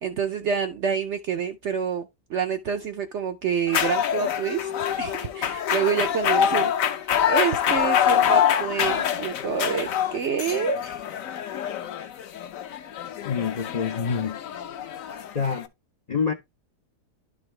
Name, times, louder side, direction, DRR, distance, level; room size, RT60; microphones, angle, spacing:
voice 1, 0.0-4.7 5.0-6.7 7.0-11.0, right 7 dB, 65° right, 0.7 m, -27 dB
sound 1, 3.7-15.7, left 9 dB, 65° left, 0.9 m, -25 dB
voice 2, 13.2-14.4 15.3-15.7 16.1-16.3, left 6 dB, 85° left, 0.3 m, -26 dB
11.5 x 3.9 x 3.2 m
omnidirectional pair, 1.8 m